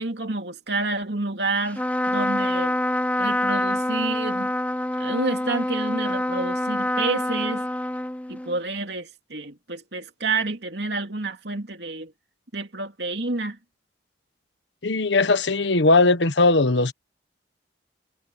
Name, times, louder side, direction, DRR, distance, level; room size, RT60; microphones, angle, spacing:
voice 1, 0.0-2.8 3.2-4.5 5.0-7.7 8.3-12.1 12.5-13.6, right 3 dB, 70° right, 2.7 m, -29 dB
Trumpet, 1.7-8.6, left 1 dB, 10° left, 0.8 m, -26 dB
voice 2, 14.8-16.9, left 3 dB, 80° left, 1.3 m, -19 dB
head